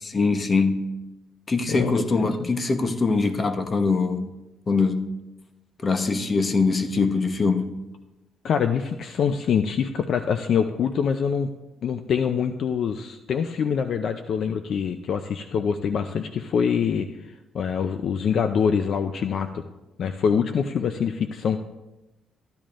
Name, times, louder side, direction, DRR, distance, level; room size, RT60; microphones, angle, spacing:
voice 1, 0.1-0.9 1.5-4.3 4.7-5.1 5.8-7.7, left 4 dB, 35° left, 0.9 m, -23 dB
voice 2, 1.7-2.5 8.4-11.5 11.8-19.6 20.0-21.6, left 7 dB, 65° left, 0.5 m, -25 dB
14.0 x 10.5 x 2.5 m
cardioid pair, 90°, 0 cm